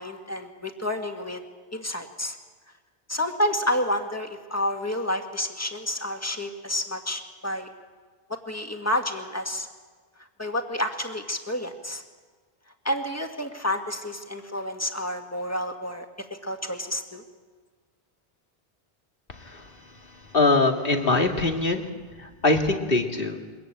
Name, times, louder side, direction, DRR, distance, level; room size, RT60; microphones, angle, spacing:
voice 1, 0.0-1.4 1.7-2.4 3.1-7.7 8.5-9.7 10.4-12.0 12.8-17.2, left 1 dB, 15° left, 5 dB, 1.9 m, -29 dB
voice 2, 20.3-21.8 22.2-23.4, left 3 dB, 60° left, 3 dB, 2.3 m, -22 dB
23.5 x 21.5 x 9.0 m, 1.4 s
omnidirectional pair, 1.0 m